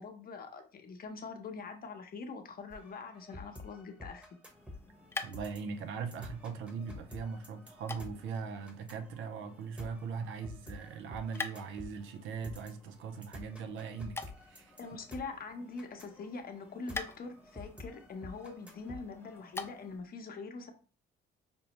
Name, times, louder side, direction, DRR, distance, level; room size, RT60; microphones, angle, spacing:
voice 1, 0.0-4.2 14.8-20.7, left 4 dB, 50° left, 0.8 m, -43 dB
sound 1, 2.7-19.6, left 2 dB, 5° right, 0.9 m, -50 dB
sound 2, 4.5-20.1, left 3 dB, 15° left, 0.3 m, -48 dB
voice 2, 5.2-14.8, right 5 dB, 80° right, 0.5 m, -40 dB
5.2 x 2.0 x 2.9 m
cardioid pair, 90°, 20 cm